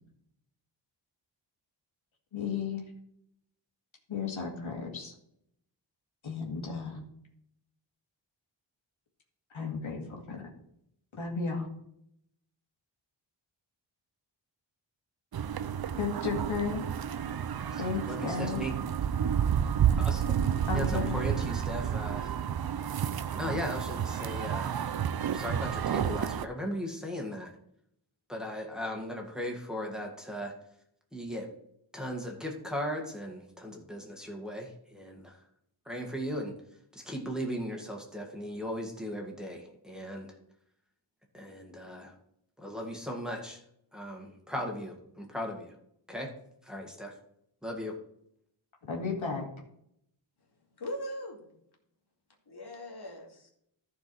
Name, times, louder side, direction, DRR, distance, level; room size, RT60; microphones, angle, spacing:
voice 1, 2.3-2.8 4.1-5.1 6.2-7.1 9.5-10.4 11.1-11.7 16.0-16.8 17.8-18.6 20.7-21.2 48.9-49.5, left 5 dB, 80° left, 0 dB, 2.2 m, -34 dB
sound 1, 15.3-26.5, right 8 dB, 50° right, 0.5 m, -30 dB
voice 2, 17.7-18.8 20.0-20.2 20.7-22.4 23.3-24.9 25.3-27.5 28.3-30.6 31.1-31.5 31.9-35.4 35.9-36.5 36.9-40.3 41.3-42.1 42.6-43.6 43.9-45.8 46.1-46.3 46.6-47.1 47.6-48.0, equal, ahead, 0 dB, 1.9 m, -37 dB
voice 3, 50.4-51.5 52.5-53.5, equal, 55° left, -1 dB, 2.4 m, -41 dB
14.0 x 4.7 x 4.7 m, 0.73 s
wide cardioid pair, 90°, 47 cm